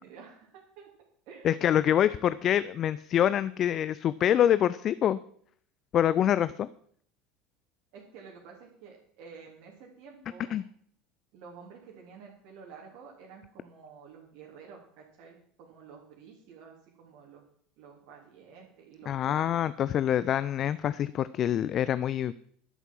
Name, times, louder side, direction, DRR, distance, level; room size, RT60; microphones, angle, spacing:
voice 1, 0.0-0.9 1.2-1.5 7.9-10.6 11.3-17.4 17.8-19.6, right 6 dB, 60° right, -3 dB, 3.4 m, -50 dB
voice 2, 1.4-5.2 5.9-6.7 10.5-10.6 19.1-22.3, left 10 dB, 45° left, 16 dB, 0.5 m, -25 dB
12.0 x 8.1 x 7.7 m, 0.63 s
figure-of-eight pair, 70°, 0 cm